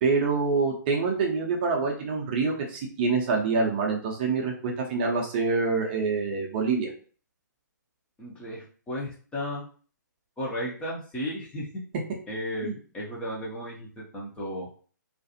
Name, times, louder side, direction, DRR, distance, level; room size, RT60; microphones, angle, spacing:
voice 1, 0.0-6.9 12.6-12.7, right 4 dB, 30° right, -1 dB, 0.6 m, -26 dB
voice 2, 8.2-9.7 10.4-11.7 12.3-14.7, equal, 10° left, -5 dB, 0.6 m, -34 dB
2.5 x 2.4 x 2.6 m, 0.40 s
figure-of-eight pair, 130°, 10 cm